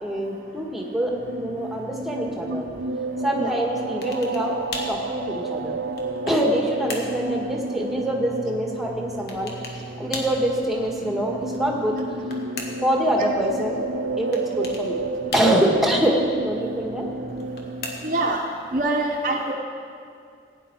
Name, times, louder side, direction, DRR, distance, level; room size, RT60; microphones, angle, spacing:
voice 1, 0.0-2.6 3.2-4.5 4.9-5.8 6.3-9.5 10.0-11.9 12.8-13.8 14.2-15.0 15.3-16.2 16.4-17.0, equal, ahead, -1 dB, 1.4 m, -24 dB
sound 1, 1.0-18.3, right 2 dB, 85° right, 0.6 m, -31 dB
sound 2, 4.0-4.5 4.7-5.0 5.6-6.5 6.9-7.2 9.3-9.8 10.1-10.4 11.8-12.9 14.3-14.9 15.3-15.9 17.3-18.3, left 3 dB, 55° left, 1.5 m, -36 dB
voice 2, 18.0-18.4 18.7-19.5, right 2 dB, 45° right, 0 dB, 0.8 m, -24 dB
16.5 x 9.7 x 4.5 m, 2.3 s
head